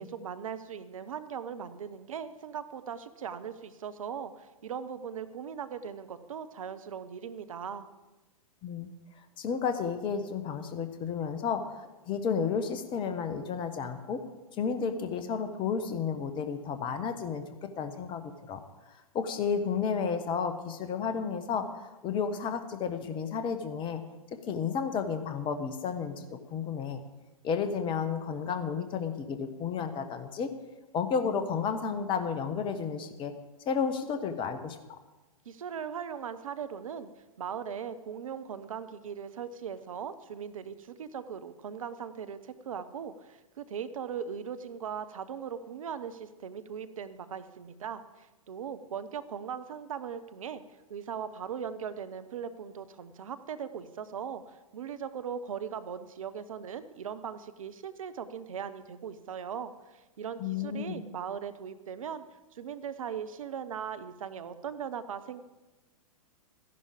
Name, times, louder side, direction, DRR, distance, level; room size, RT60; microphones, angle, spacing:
voice 1, 0.0-7.9 35.5-37.1 37.4-50.6 50.9-62.2 62.5-65.4, right 7 dB, 65° right, 12 dB, 0.9 m, -39 dB
voice 2, 9.4-14.2 14.6-18.6 19.1-24.0 24.3-27.0 27.4-30.5 30.9-33.3 33.7-35.0 60.4-61.0, left 6 dB, 25° left, 9 dB, 1.2 m, -32 dB
14.0 x 11.0 x 5.1 m, 1.1 s
figure-of-eight pair, 105°, 19 cm